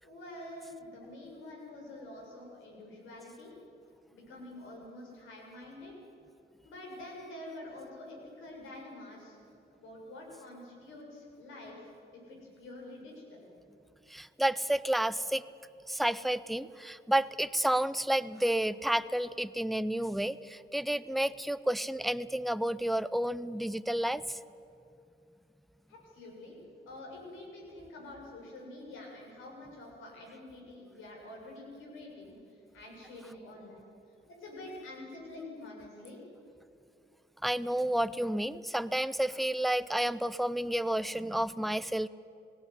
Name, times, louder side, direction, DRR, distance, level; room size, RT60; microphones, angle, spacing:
voice 1, 0.0-3.6 4.1-5.9 6.6-9.4 9.7-13.5 25.9-26.6 26.8-33.8 34.4-36.2, left 1 dB, 85° left, -1 dB, 6.5 m, -47 dB
voice 2, 14.1-15.4 15.9-24.2 37.4-42.1, right 1 dB, ahead, 15 dB, 0.5 m, -30 dB
18.0 x 17.0 x 9.8 m, 2.6 s
cardioid pair, 90°, 20 cm